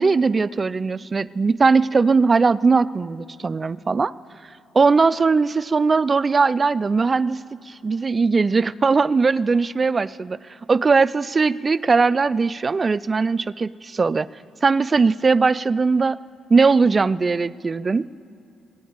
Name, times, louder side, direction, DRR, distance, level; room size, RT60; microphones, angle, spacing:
voice 1, 0.0-4.1 4.7-10.4 10.7-14.3 14.6-16.2 16.5-18.0, right 4 dB, 30° right, 18 dB, 0.3 m, -19 dB
15.0 x 10.0 x 9.2 m, 2.9 s
cardioid pair, 90°, 0 cm